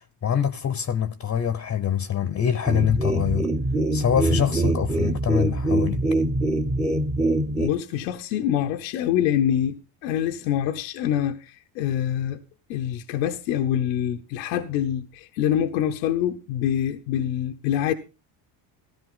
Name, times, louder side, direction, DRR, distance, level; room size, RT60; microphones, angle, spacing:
voice 1, 0.0-3.5 3.9-6.0, left 8 dB, 30° left, 0.9 m, -24 dB
sound 1, 2.6-7.7, right 2 dB, 15° right, 1.1 m, -24 dB
voice 2, 7.6-12.4 12.7-17.9, left 10 dB, 90° left, 1.0 m, -25 dB
14.0 x 12.0 x 3.8 m
supercardioid pair, 90°, 48 cm